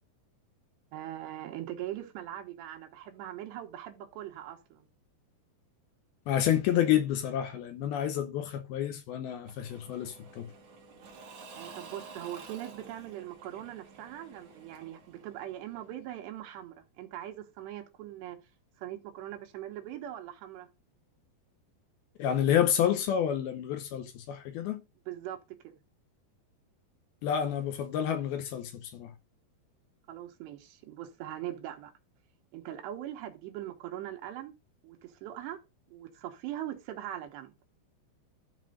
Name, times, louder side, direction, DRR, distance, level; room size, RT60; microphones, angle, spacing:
voice 1, 0.9-4.9 11.5-18.4 18.8-20.7 25.1-25.8 30.1-31.9 32.5-34.5 34.8-35.6 35.9-37.5, right 12 dB, 80° right, 3.3 m, -41 dB
voice 2, 6.3-10.5 22.2-24.8 27.2-29.1, left 10 dB, 80° left, 2.4 m, -29 dB
Engine / Mechanisms / Drill, 9.5-16.2, right 4 dB, 50° right, 3.1 m, -51 dB
12.5 x 4.3 x 3.9 m
omnidirectional pair, 4.9 m